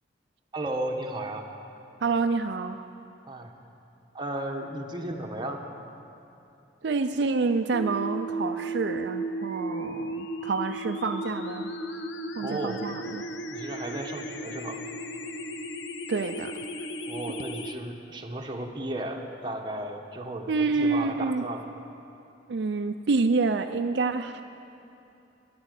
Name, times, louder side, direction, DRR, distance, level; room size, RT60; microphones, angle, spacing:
voice 1, 0.5-1.5 3.2-3.5 4.1-5.6 12.4-12.9 13.5-14.8 17.1-21.7, right 1 dB, 25° right, 1 dB, 1.1 m, -34 dB
voice 2, 2.0-2.8 6.8-11.7 12.4-13.2 16.1-16.6 20.5-21.4 22.5-24.4, right 4 dB, 70° right, 7 dB, 0.4 m, -27 dB
sound 1, 7.7-17.7, right 1 dB, 90° left, 0.8 m, -35 dB
13.0 x 10.5 x 8.2 m, 2.8 s
head